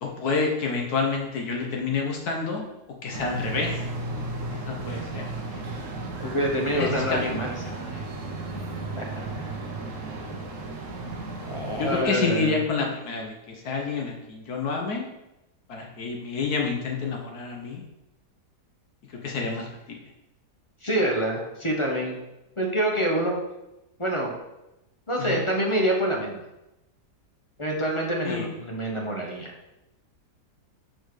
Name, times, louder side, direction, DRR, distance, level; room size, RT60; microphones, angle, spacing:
voice 1, 0.0-2.7 3.0-3.8 4.5-5.6 6.8-8.1 8.4-8.6 11.8-15.1 15.7-17.8 19.1-20.0 25.2-25.4 28.2-28.5, left 4 dB, 65° left, 1 dB, 1.4 m, -29 dB
sound 1, 3.1-12.0, right 3 dB, 55° right, 1.2 m, -34 dB
voice 2, 6.2-7.5 8.9-9.2 10.3-10.4 11.5-12.6 20.8-22.2 22.6-23.4 24.0-24.3 25.1-26.4 27.6-29.5, right 1 dB, 20° left, 0 dB, 1.0 m, -26 dB
6.4 x 4.4 x 4.9 m, 0.92 s
omnidirectional pair, 1.8 m